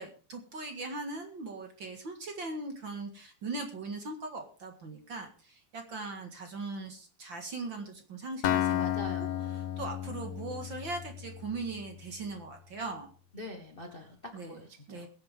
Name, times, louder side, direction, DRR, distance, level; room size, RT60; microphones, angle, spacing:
voice 1, 0.0-8.8 9.8-13.1 14.3-14.6 14.9-15.1, right 3 dB, 45° right, 4 dB, 2.1 m, -39 dB
Acoustic guitar, 8.4-12.3, left 12 dB, 65° left, 2.1 m, -33 dB
voice 2, 8.8-9.7 13.3-15.1, left 1 dB, 30° left, 3 dB, 1.0 m, -44 dB
21.5 x 8.9 x 3.7 m, 0.36 s
omnidirectional pair, 3.7 m